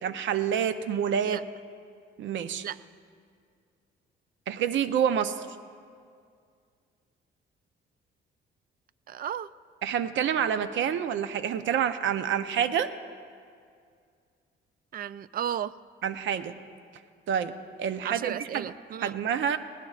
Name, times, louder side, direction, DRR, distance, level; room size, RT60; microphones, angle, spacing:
voice 1, 0.0-1.4 2.2-2.6 4.5-5.3 9.8-12.9 16.0-16.5 17.3-17.5 17.8-18.7 19.0-19.6, right 8 dB, 75° right, 11 dB, 0.7 m, -27 dB
voice 2, 9.1-9.5 14.9-15.7 18.0-19.2, right 9 dB, 45° right, 17 dB, 0.4 m, -34 dB
20.5 x 17.5 x 2.4 m, 2.2 s
cardioid pair, 90°, 20 cm